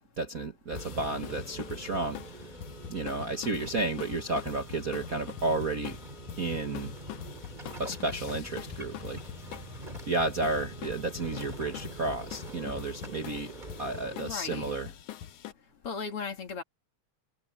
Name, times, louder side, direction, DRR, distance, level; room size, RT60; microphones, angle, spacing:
voice 1, 0.2-2.5 2.9-6.0 6.4-6.9 7.8-9.2 10.1-13.5 13.8-14.9, right 2 dB, 40° right, 1.3 m, -32 dB
sound 1, 0.7-14.2, right 1 dB, 15° right, 3.7 m, -45 dB
sound 2, 0.8-15.5, left 11 dB, 85° left, 2.6 m, -44 dB
sound 3, 1.0-12.6, left 1 dB, 10° left, 1.3 m, -54 dB
voice 2, 14.2-14.7 15.8-16.6, left 5 dB, 50° left, 2.7 m, -36 dB
omnidirectional pair, 3.4 m